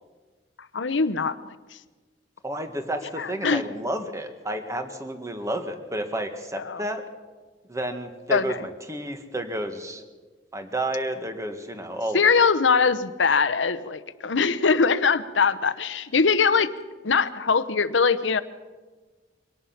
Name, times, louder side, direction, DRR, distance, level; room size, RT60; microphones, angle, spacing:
voice 1, 0.7-1.5 3.2-3.7 6.6-6.8 8.3-8.6 12.1-16.7 17.0-18.4, left 5 dB, 90° left, 13 dB, 0.9 m, -22 dB
voice 2, 2.4-7.0 7.7-10.0 10.5-12.4 16.6-16.7, right 1 dB, 15° right, 7 dB, 1.7 m, -31 dB
24.0 x 18.5 x 5.9 m, 1.3 s
head